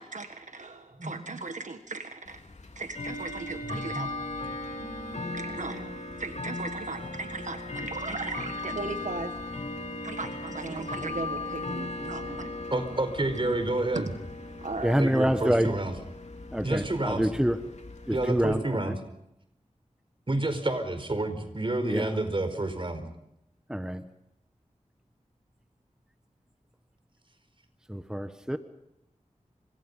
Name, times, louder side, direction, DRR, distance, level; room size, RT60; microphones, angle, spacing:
voice 1, 0.0-2.4 2.7-4.1 4.8-9.4 10.0-12.4 13.9-14.1 14.6-15.0, right 3 dB, 70° right, 7 dB, 1.6 m, -37 dB
Bell / Tick-tock, 2.3-18.6, left 2 dB, 65° left, 3.3 m, -38 dB
voice 2, 3.6-4.1 12.7-14.1 15.0-15.9 16.6-17.3 18.1-19.0 20.3-23.0, right 2 dB, 40° right, 8 dB, 4.7 m, -29 dB
voice 3, 14.8-15.8 16.5-17.6 18.1-18.9 21.8-22.1 23.7-24.1 27.9-28.6, equal, 5° right, 8 dB, 1.4 m, -27 dB
30.0 x 26.0 x 5.6 m, 0.82 s
wide cardioid pair, 70°, 13 cm